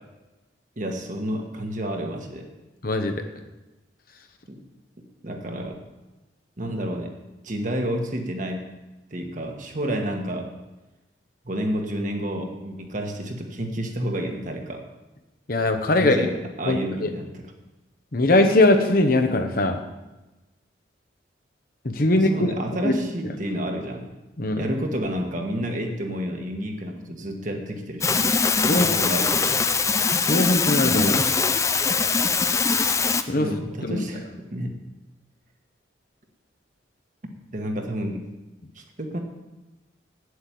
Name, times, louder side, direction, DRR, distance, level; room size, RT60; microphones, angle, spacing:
voice 1, 0.8-2.5 4.5-4.6 5.2-5.8 6.6-7.1 7.4-8.7 9.1-10.5 11.4-14.9 15.9-17.5 22.1-24.1 24.6-28.2 28.6-29.6 33.3-34.7 37.5-38.2 38.7-39.2, equal, 40° right, 3 dB, 1.5 m, -30 dB
voice 2, 2.8-3.2 15.5-16.2 16.7-17.1 18.1-19.8 21.8-22.5 22.8-22.9 24.4-24.7 28.6-29.0 30.3-31.2 33.3-33.5 33.8-34.1, left 2 dB, 50° left, 6 dB, 1.0 m, -21 dB
sound 1, 28.0-33.2, left 5 dB, 15° left, 0.4 m, -22 dB
8.8 x 8.1 x 9.3 m, 1.1 s
head